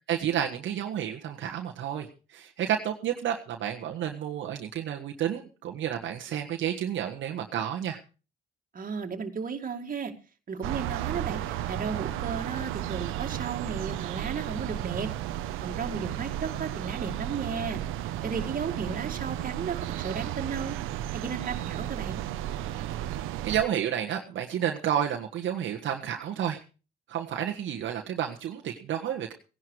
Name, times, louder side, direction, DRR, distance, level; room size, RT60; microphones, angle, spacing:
voice 1, 0.1-8.0 23.4-26.6 27.1-29.3, right 10 dB, 70° right, 2 dB, 1.5 m, -31 dB
voice 2, 8.7-10.1 10.5-15.1 15.6-20.7 21.1-22.2, right 5 dB, 45° right, 5 dB, 2.5 m, -34 dB
sound 1, 10.6-23.7, right 12 dB, 85° right, 1.1 m, -33 dB
17.0 x 10.5 x 4.9 m, 0.35 s
supercardioid pair, 70°, 20 cm